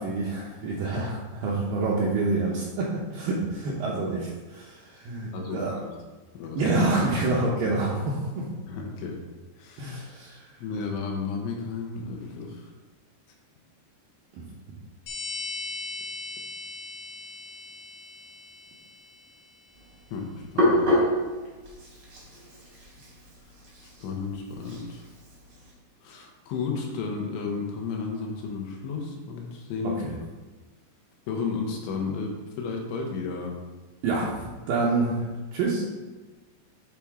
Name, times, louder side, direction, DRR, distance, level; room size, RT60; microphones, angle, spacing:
voice 1, 0.0-5.7 6.5-8.5 9.8-10.5 14.3-14.5 30.0-30.2 34.0-35.3 35.5-35.8, right 3 dB, 90° right, -5 dB, 1.9 m, -27 dB
voice 2, 5.3-5.9 6.3-6.6 8.7-9.2 9.6-9.9 10.6-12.7 20.1-20.3 20.5-20.8 24.0-25.0 26.0-30.0 31.3-33.6, left 4 dB, 85° left, 1 dB, 3.1 m, -33 dB
sound 1, 15.1-19.3, left 2 dB, 70° left, 1.9 m, -38 dB
Hands, 19.8-25.7, left 1 dB, 65° right, 1.0 m, -28 dB
8.4 x 3.5 x 4.5 m, 1.2 s
omnidirectional pair, 5.2 m